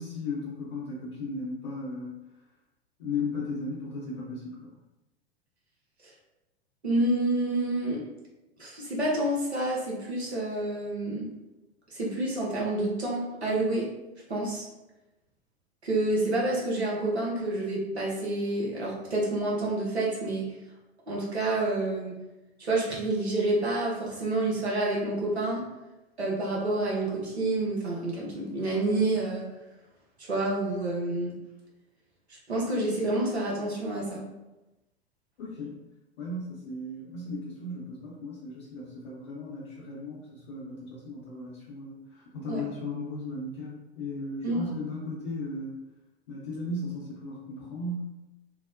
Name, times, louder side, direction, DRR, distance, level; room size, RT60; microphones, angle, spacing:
voice 1, 0.0-2.2 3.0-4.7 35.4-35.8 36.2-45.9 46.3-48.2, left 2 dB, 55° left, -7 dB, 0.7 m, -36 dB
voice 2, 6.8-8.0 8.6-11.3 11.9-13.9 14.3-14.7 15.8-20.5 21.1-22.2 22.6-25.6 26.2-29.5 30.3-31.3 32.5-34.2 42.5-42.6 44.4-44.6, right 2 dB, 80° right, -4 dB, 0.9 m, -28 dB
2.9 x 2.0 x 2.5 m, 0.99 s
figure-of-eight pair, 95°, 32 cm